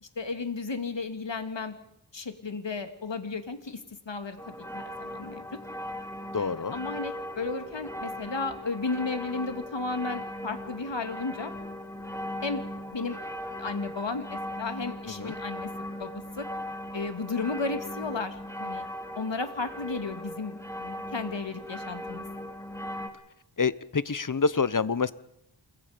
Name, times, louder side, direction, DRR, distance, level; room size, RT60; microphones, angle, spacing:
voice 1, 0.0-1.7 2.1-3.8 4.1-5.4 6.4-11.5 12.4-12.6 12.9-13.2 13.5-15.7 16.0-16.1 16.4-16.5 16.9-18.9 19.2-22.2, left 4 dB, 65° left, 7 dB, 2.5 m, -34 dB
sound 1, 4.4-23.1, left 1 dB, 5° left, 2.8 m, -38 dB
voice 2, 6.3-6.8 15.2-15.4 23.6-25.1, left 5 dB, 40° left, 17 dB, 1.0 m, -27 dB
28.0 x 21.5 x 5.2 m, 0.78 s
wide cardioid pair, 60°, 46 cm